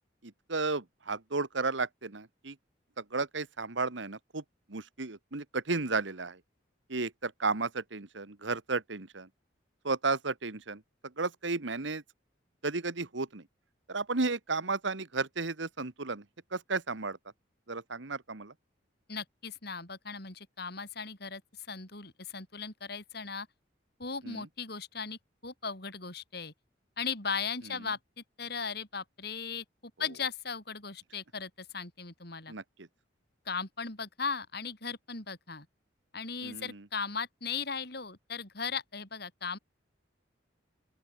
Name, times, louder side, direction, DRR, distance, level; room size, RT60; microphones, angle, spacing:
voice 1, 0.2-2.6 3.0-4.4 4.7-6.4 6.9-9.3 9.8-12.0 12.6-13.4 13.9-16.2 16.5-17.2 17.7-18.5 24.2-24.5 32.5-32.9 36.4-36.8, right 3 dB, 75° right, 1.5 m, -33 dB
voice 2, 19.1-23.5 24.0-26.5 27.0-29.6 30.0-32.5 33.4-35.7 36.1-39.6, left 5 dB, 55° left, 4.8 m, -37 dB
open air
head